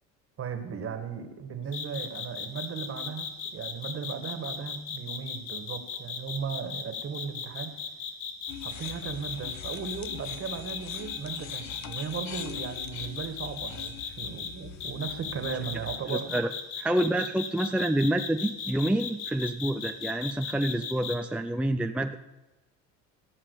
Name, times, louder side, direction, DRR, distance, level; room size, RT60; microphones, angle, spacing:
voice 1, 0.4-7.8 8.6-16.4, right 6 dB, 40° right, 8 dB, 1.9 m, -36 dB
sound 1, 1.7-14.5 14.8-21.1, left 7 dB, 70° left, 1.9 m, -36 dB
sound 2, 8.5-16.0, left 8 dB, 55° left, 1.1 m, -44 dB
voice 2, 16.1-16.5 16.8-22.2, right 1 dB, 5° right, 6 dB, 0.5 m, -28 dB
16.5 x 5.7 x 8.4 m, 1.1 s
supercardioid pair, 100°, 33 cm